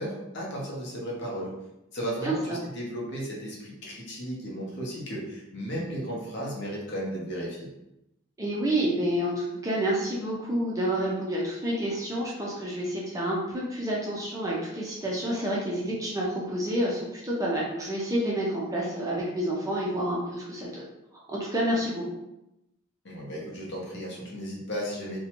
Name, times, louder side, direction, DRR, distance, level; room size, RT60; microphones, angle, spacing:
voice 1, 0.0-1.5 1.9-7.7 23.0-25.2, equal, 55° left, -3 dB, 0.7 m, -34 dB
voice 2, 2.2-2.6 8.4-20.8 21.3-22.0, right 1 dB, 15° right, -4 dB, 0.4 m, -29 dB
2.6 x 2.1 x 2.8 m, 0.91 s
head